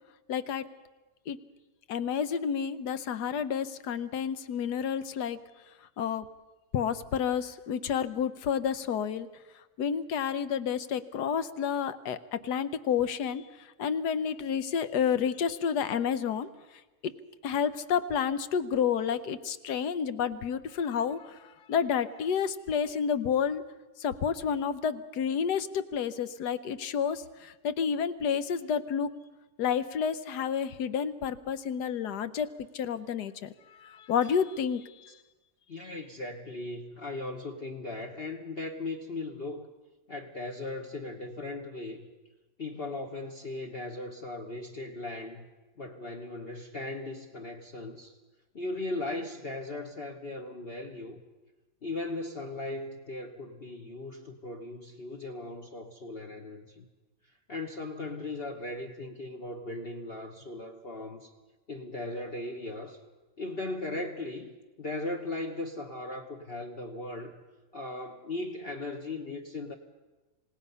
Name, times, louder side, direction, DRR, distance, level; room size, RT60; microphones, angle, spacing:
voice 1, 0.3-0.7 1.3-1.4 1.9-5.4 6.0-6.2 6.7-9.3 9.8-16.5 17.0-17.1 17.4-23.6 24.0-29.1 29.6-32.5 32.7-35.1, left 7 dB, 75° left, 13 dB, 1.4 m, -30 dB
voice 2, 35.7-39.7 40.1-42.1 42.6-45.4 45.8-48.2 48.5-51.2 51.8-56.9 57.2-61.3 61.7-63.0 63.4-67.4 67.7-69.7, left 2 dB, 40° left, 3 dB, 1.2 m, -38 dB
27.5 x 17.5 x 5.6 m, 1.2 s
omnidirectional pair, 1.8 m